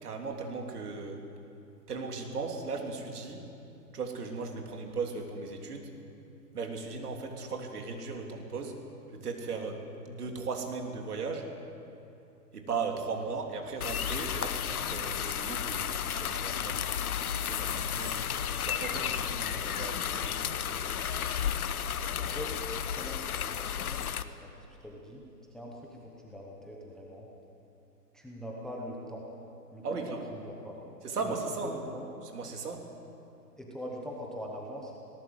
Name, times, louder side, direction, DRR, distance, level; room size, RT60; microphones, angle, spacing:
voice 1, 0.0-1.2 1.9-3.5 3.9-5.9 6.5-8.8 9.1-11.5 12.5-16.9 17.4-20.8 29.8-30.3 31.0-31.8 32.3-32.9, right 4 dB, 65° right, 2 dB, 3.6 m, -37 dB
sound 1, 13.8-24.2, left 8 dB, 60° left, 1.1 m, -33 dB
voice 2, 22.2-25.2 25.5-27.3 28.1-29.3 29.7-30.8 31.2-32.0 33.6-35.0, equal, ahead, -3 dB, 0.9 m, -43 dB
20.0 x 18.0 x 8.0 m, 2.7 s
hypercardioid pair, 145°, 49 cm